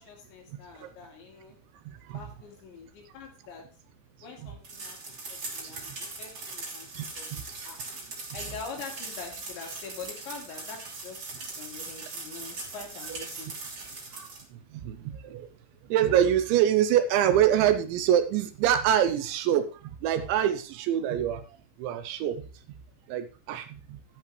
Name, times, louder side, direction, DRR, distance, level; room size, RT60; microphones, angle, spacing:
voice 1, 0.0-1.6 2.1-3.6 4.2-5.9 6.2-7.8 8.3-13.6, left 5 dB, 70° left, 1 dB, 4.7 m, -44 dB
sound 1, 4.6-14.4, right 3 dB, 30° right, 2.4 m, -40 dB
voice 2, 15.9-19.7 20.0-21.4 21.8-22.4 23.1-24.0, right 10 dB, 80° right, 10 dB, 2.9 m, -24 dB
11.5 x 10.5 x 3.2 m, 0.34 s
omnidirectional pair, 5.6 m